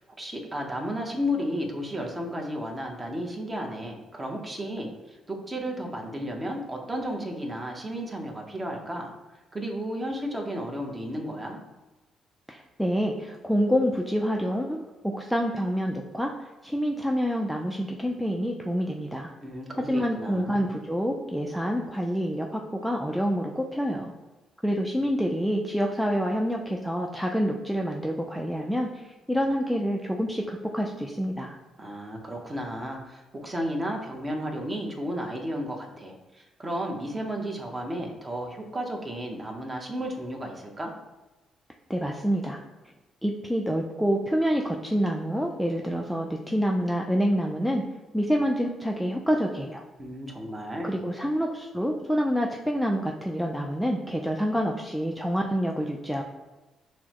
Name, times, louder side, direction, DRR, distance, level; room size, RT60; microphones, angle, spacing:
voice 1, 0.0-9.1 9.5-11.6 19.4-20.7 31.8-40.9 50.0-50.9, equal, 25° right, 1 dB, 0.8 m, -33 dB
voice 2, 12.5-14.8 15.0-19.3 19.9-24.1 24.6-31.6 41.9-42.6 43.2-47.8 48.1-49.8 50.8-56.2, equal, ahead, 0 dB, 0.4 m, -27 dB
5.9 x 2.1 x 2.9 m, 1.1 s
cardioid pair, 90°, 0 cm